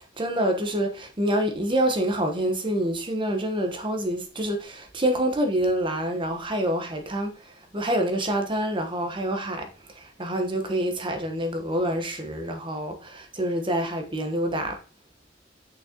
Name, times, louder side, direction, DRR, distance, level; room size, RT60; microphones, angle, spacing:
voice 1, 0.2-7.3 7.7-9.7 10.0-14.8, right 1 dB, 30° right, 1.1 m, -26 dB
6.4 x 6.2 x 2.9 m
head